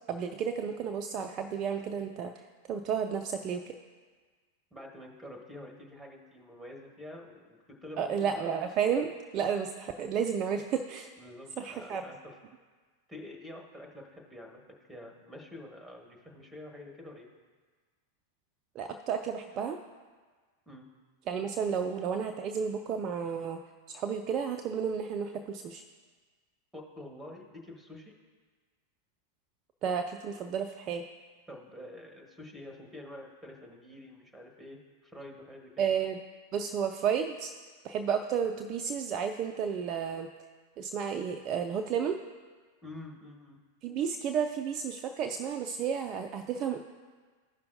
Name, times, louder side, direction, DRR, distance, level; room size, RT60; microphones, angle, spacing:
voice 1, 0.1-2.3 2.7-3.8 8.0-11.1 11.6-12.0 18.8-19.8 21.3-23.6 23.9-25.8 29.8-31.0 35.8-36.2 36.5-37.5 37.8-40.3 40.8-42.2 43.8-46.8, right 7 dB, 35° right, 5 dB, 0.4 m, -32 dB
voice 2, 4.7-8.5 11.2-12.3 13.1-14.6 14.9-17.3 20.7-20.8 26.7-28.1 31.5-35.9 42.8-43.6, left 1 dB, 5° right, 2 dB, 1.4 m, -47 dB
14.5 x 5.6 x 2.7 m, 1.5 s
figure-of-eight pair, 90°, 0 cm